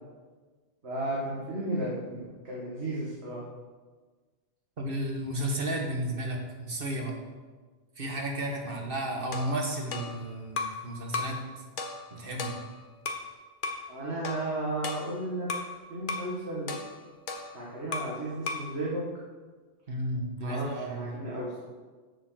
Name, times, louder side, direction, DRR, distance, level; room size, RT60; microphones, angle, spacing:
voice 1, 0.8-3.4 13.9-15.5 15.9-16.7 17.5-19.0 20.4-21.6, right 1 dB, 70° right, -6 dB, 2.1 m, -34 dB
voice 2, 4.8-7.1 8.0-11.4 12.1-12.6 19.9-21.1, right 1 dB, 55° right, 1 dB, 1.7 m, -33 dB
sound 1, 9.3-10.8 11.1-11.4 11.8-13.3 13.6-13.9 14.2-15.7 16.1-16.3 16.7-18.2 18.5-18.7, left 3 dB, 50° left, 1.0 m, -36 dB
7.7 x 7.1 x 6.5 m, 1.4 s
omnidirectional pair, 1.2 m